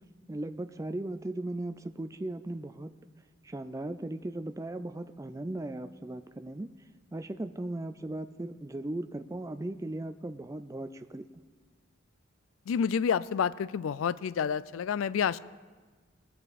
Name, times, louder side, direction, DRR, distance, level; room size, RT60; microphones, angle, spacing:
voice 1, 0.3-2.9 3.4-6.7 7.1-11.2, right 1 dB, 15° right, 10 dB, 0.4 m, -37 dB
voice 2, 12.7-15.4, left 7 dB, 85° left, 18 dB, 0.3 m, -29 dB
20.0 x 7.0 x 4.2 m, 1.4 s
head